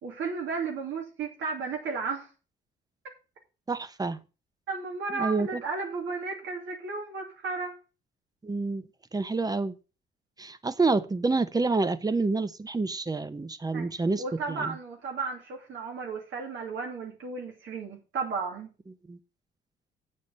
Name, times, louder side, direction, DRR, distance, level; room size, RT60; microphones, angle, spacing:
voice 1, 0.0-2.3 4.7-7.7 13.7-13.8 14.2-18.7, right 4 dB, 75° right, 0 dB, 2.8 m, -34 dB
voice 2, 3.7-4.2 5.1-5.6 8.4-8.8 9.1-9.8 10.4-14.2 14.5-14.7 19.1-19.2, right 3 dB, 20° right, 14 dB, 1.0 m, -28 dB
8.3 x 6.6 x 6.6 m, 0.33 s
cardioid pair, 90°, 20 cm